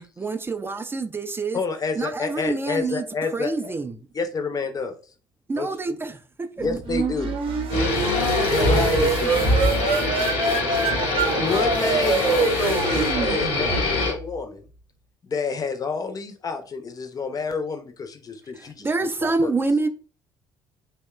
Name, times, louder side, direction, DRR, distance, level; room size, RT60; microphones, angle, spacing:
voice 1, 0.2-1.6 2.0-3.1 3.3-3.9 5.5-6.7 18.5-19.9, right 3 dB, 20° right, 0.3 m, -27 dB
voice 2, 1.5-3.7 4.1-5.0 5.5-6.0 6.6-7.4 8.5-9.5 11.4-14.7 15.2-18.9 19.2-19.5, left 4 dB, 30° left, 0.5 m, -29 dB
sound 1, 6.6-14.2, right 4 dB, 50° right, 0.6 m, -25 dB
sound 2, 7.7-14.1, left 2 dB, 65° left, 0.8 m, -24 dB
voice 3, 8.0-11.5 11.8-12.0, left 6 dB, 85° left, 0.4 m, -35 dB
2.8 x 2.1 x 2.3 m
hypercardioid pair, 55°, 11 cm